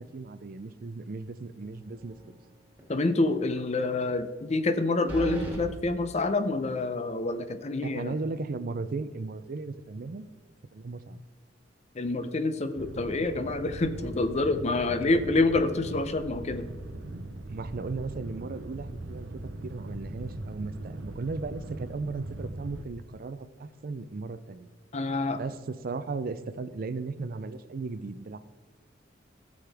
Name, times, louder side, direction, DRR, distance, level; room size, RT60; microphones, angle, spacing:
voice 1, 0.0-2.2 7.8-10.3 10.7-11.2 17.5-19.3 19.6-24.7 25.3-28.4, right 3 dB, 50° right, 13 dB, 0.4 m, -36 dB
sound 1, 2.0-2.4 2.8-2.9 5.1-5.6, right 1 dB, 10° right, 2.3 m, -36 dB
voice 2, 2.9-8.1 11.9-16.6 24.9-25.4, left 2 dB, 35° left, 10 dB, 0.6 m, -27 dB
sound 2, 12.8-22.8, right 2 dB, 85° right, 0.8 m, -40 dB
15.0 x 6.4 x 3.4 m, 1.3 s
head